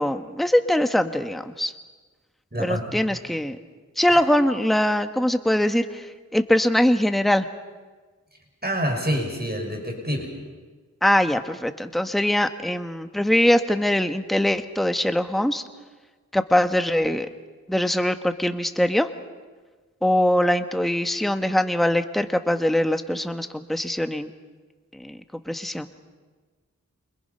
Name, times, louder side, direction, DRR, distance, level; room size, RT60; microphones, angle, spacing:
voice 1, 0.0-1.7 2.6-3.6 4.0-7.5 11.0-15.6 16.3-17.3 17.7-19.1 20.0-24.3 24.9-25.9, left 1 dB, ahead, 7 dB, 1.2 m, -22 dB
voice 2, 2.5-3.0 4.1-4.2 8.6-10.3, equal, 30° right, 2 dB, 5.9 m, -27 dB
29.0 x 25.0 x 5.6 m, 1.4 s
wide cardioid pair, 45°, 34 cm